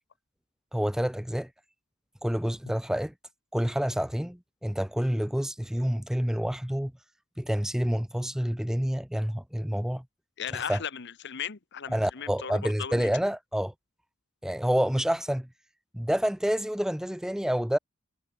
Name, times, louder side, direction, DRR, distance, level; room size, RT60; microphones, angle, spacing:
voice 1, 0.7-1.5 2.2-3.1 3.5-6.9 7.4-10.0 10.5-10.8 11.9-13.7 14.4-15.5 15.9-17.8, equal, 5° right, 0.5 m, -28 dB
voice 2, 10.4-13.1, left 8 dB, 55° left, 1.1 m, -37 dB
head